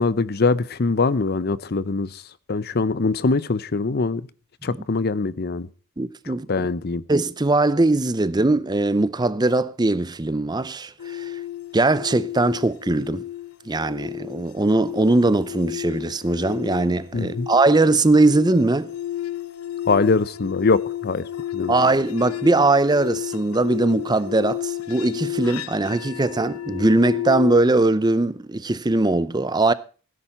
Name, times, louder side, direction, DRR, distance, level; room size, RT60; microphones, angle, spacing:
voice 1, 0.0-2.1 2.5-4.2 4.6-5.7 6.5-7.0 17.1-17.5 19.9-21.2 21.5-21.7, left 3 dB, 45° left, 0.6 m, -22 dB
voice 2, 6.0-6.7 7.1-11.4 11.7-13.2 13.7-18.9 21.7-29.7, right 2 dB, 20° right, 0.5 m, -20 dB
sound 1, 11.0-27.6, left 12 dB, 85° left, 0.7 m, -32 dB
17.0 x 10.0 x 4.2 m
head